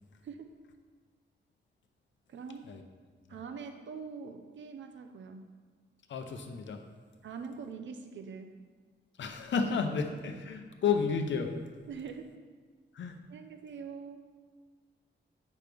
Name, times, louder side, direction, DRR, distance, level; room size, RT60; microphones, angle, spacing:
voice 1, 2.3-2.6 3.3-5.5 7.2-8.5 11.9-12.4 13.3-14.2, right 5 dB, 70° right, 6 dB, 0.6 m, -43 dB
voice 2, 6.1-6.8 9.2-11.5 12.9-13.2, left 5 dB, 70° left, 5 dB, 0.7 m, -31 dB
9.4 x 6.0 x 3.4 m, 1.5 s
wide cardioid pair, 135°, 20 cm